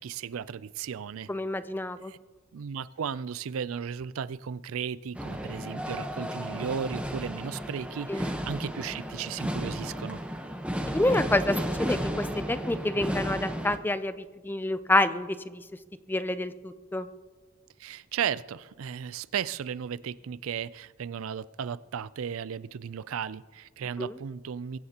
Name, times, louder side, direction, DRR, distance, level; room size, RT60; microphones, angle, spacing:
voice 1, 0.0-1.3 2.1-2.2 2.5-10.2 17.8-24.8, right 7 dB, 65° right, 17 dB, 0.4 m, -35 dB
voice 2, 1.3-2.1 8.1-8.3 10.9-15.6 16.1-17.1 24.0-24.1, left 1 dB, 10° left, 12 dB, 0.4 m, -28 dB
sound 1, 5.1-13.8, equal, 5° right, 1.0 m, -33 dB
23.0 x 16.0 x 2.9 m, 1.4 s
head